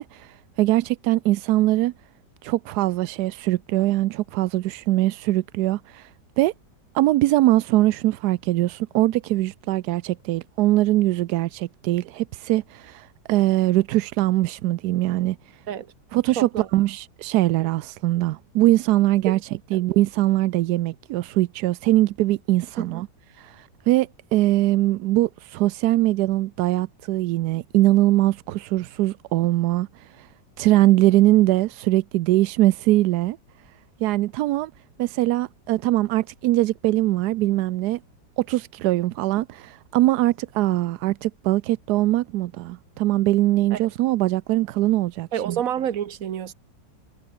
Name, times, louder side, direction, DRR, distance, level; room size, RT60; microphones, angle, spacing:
voice 1, 0.0-1.9 2.4-6.1 6.4-6.5 6.9-15.4 16.1-19.4 19.7-23.1 23.3-30.3 30.6-33.4 34.0-34.7 35.0-38.0 38.4-45.6, right 16 dB, 75° right, 1.0 m, -22 dB
voice 2, 16.4-16.7 17.6-17.7 19.3-19.4 19.7-19.8 22.8-23.0 43.7-43.8 45.3-46.5, right 9 dB, 55° right, 1.3 m, -28 dB
omnidirectional pair, 1.9 m